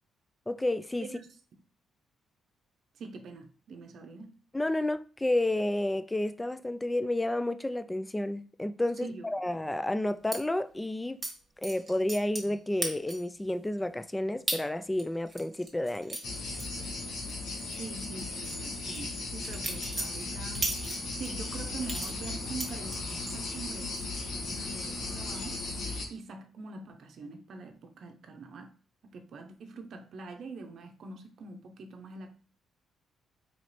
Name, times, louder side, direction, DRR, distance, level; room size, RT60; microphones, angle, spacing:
voice 1, 0.5-1.1 4.5-11.2 11.6-16.2, left 1 dB, 10° left, 0.3 m, -31 dB
voice 2, 1.1-1.6 2.9-4.4 9.0-9.3 17.8-20.7 21.2-25.6 26.1-28.7 29.0-32.4, right 4 dB, 60° right, 0.7 m, -44 dB
sound 1, 10.3-10.4 11.2-11.3 11.6-12.5 12.8-13.3 13.8-13.9 14.5-14.6 15.0-17.3 17.6-17.8 18.2-21.3 21.8-23.4 23.8-24.2 24.5-24.9, right 2 dB, 25° right, 1.2 m, -36 dB
sound 2, 16.2-26.1, left 3 dB, 75° left, 1.2 m, -37 dB
3.1 x 3.0 x 4.1 m
cardioid pair, 90°, 0 cm